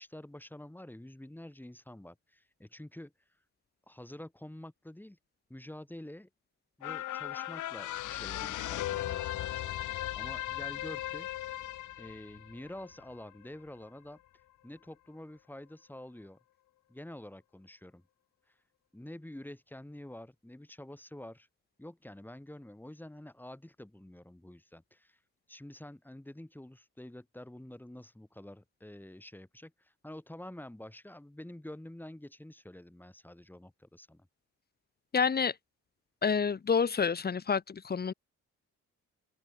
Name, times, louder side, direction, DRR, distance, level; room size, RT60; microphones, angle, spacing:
voice 1, 0.0-3.1 3.9-5.2 5.5-6.3 6.8-11.5 12.0-14.2 14.6-16.4 16.9-18.0 18.5-18.6 18.9-21.5 21.8-25.2 25.5-34.3, left 1 dB, 5° left, 7.4 m, -48 dB
sound 1, 6.8-13.5 13.9-14.0, left 14 dB, 80° left, 2.0 m, -37 dB
voice 2, 35.1-35.5 36.2-38.1, left 6 dB, 30° left, 1.4 m, -28 dB
cardioid pair, 90°, 30 cm